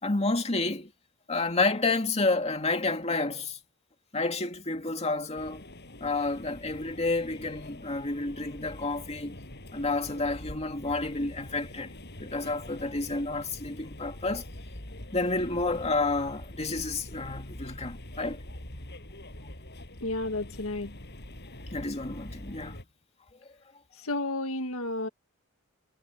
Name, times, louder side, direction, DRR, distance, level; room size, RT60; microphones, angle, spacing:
voice 1, 0.0-0.9 1.3-3.6 4.1-5.6 6.0-9.4 9.7-14.5 15.1-18.4 21.7-22.8, left 3 dB, 30° left, 2.4 m, -30 dB
sound 1, 5.4-22.8, left 1 dB, 55° left, 6.3 m, -44 dB
voice 2, 20.0-20.9 24.0-25.1, left 2 dB, 70° left, 1.8 m, -32 dB
head